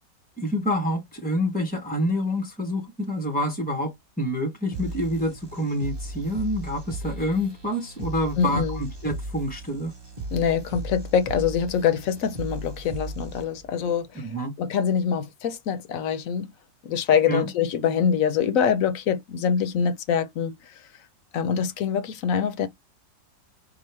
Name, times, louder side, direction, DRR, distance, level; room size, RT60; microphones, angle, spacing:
voice 1, 0.4-9.9 14.1-14.5 17.3-17.5, equal, 10° left, 0.4 m, -27 dB
sound 1, 4.7-13.7, right 2 dB, 20° right, 0.8 m, -36 dB
voice 2, 8.4-8.8 10.3-14.3 14.6-16.5 16.8-20.8 21.3-22.7, left 7 dB, 60° left, 1.0 m, -24 dB
6.0 x 2.2 x 3.2 m
omnidirectional pair, 1.8 m